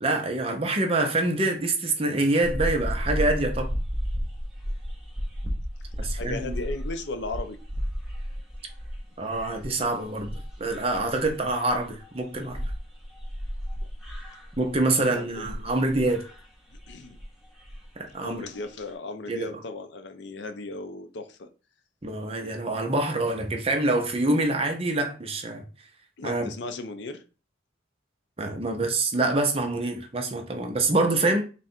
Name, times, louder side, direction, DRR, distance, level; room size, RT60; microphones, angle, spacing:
voice 1, 0.0-3.7 6.0-6.5 9.2-10.3 10.6-12.6 14.6-16.2 18.0-18.4 19.3-19.5 22.0-25.7 26.2-26.4 28.4-31.4, right 2 dB, 30° right, 0.6 m, -26 dB
sound 1, 2.4-15.0 15.3-16.4 16.7-17.3 17.6-17.8 18.1-18.3 18.6-18.9, equal, ahead, 0.8 m, -33 dB
voice 2, 6.0-7.6 15.0-15.3 16.9-17.2 18.2-21.5 26.2-27.2, left 2 dB, 65° left, 0.5 m, -36 dB
3.8 x 2.4 x 4.2 m
head